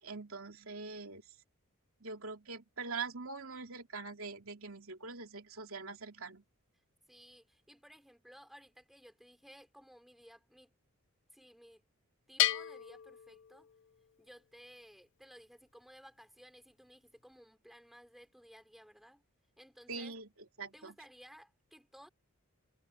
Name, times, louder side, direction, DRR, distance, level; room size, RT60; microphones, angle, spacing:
voice 1, 0.0-1.2 2.0-6.4 19.9-20.3 20.6-20.9, right 4 dB, 70° right, 2.9 m, -43 dB
voice 2, 7.1-10.7 11.3-11.9 12.3-13.7 14.2-19.2 19.6-20.2 20.7-22.1, equal, ahead, 5.4 m, -58 dB
Bell, 12.4-14.1, left 13 dB, 55° left, 0.5 m, -34 dB
head